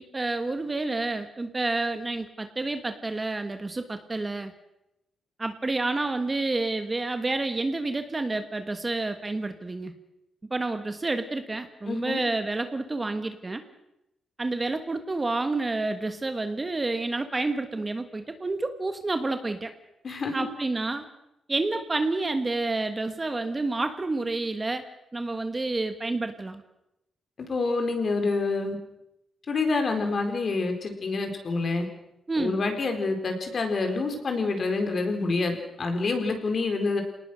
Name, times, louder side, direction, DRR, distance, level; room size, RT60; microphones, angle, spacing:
voice 1, 0.0-4.5 5.4-9.9 10.5-13.6 14.4-19.7 20.3-21.1 21.5-24.8 25.1-26.6 32.3-32.6, right 2 dB, 20° right, 8 dB, 1.4 m, -29 dB
voice 2, 11.9-12.2 20.0-20.5 27.4-28.8 29.5-31.9 32.4-37.0, left 3 dB, 40° left, 5 dB, 4.3 m, -27 dB
28.0 x 19.0 x 6.4 m, 0.85 s
wide cardioid pair, 145°, 0 cm